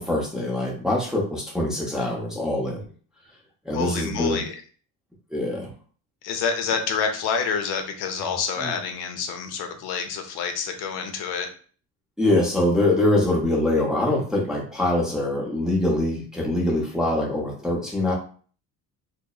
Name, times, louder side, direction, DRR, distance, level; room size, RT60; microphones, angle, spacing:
voice 1, 0.0-2.9 3.6-4.4 5.3-5.7 8.6-8.7 12.2-18.1, left 1 dB, ahead, -4 dB, 0.6 m, -24 dB
voice 2, 3.7-4.5 6.2-11.5, left 6 dB, 75° left, 5 dB, 0.6 m, -28 dB
2.7 x 2.0 x 2.3 m, 0.42 s
cardioid pair, 110°, 39 cm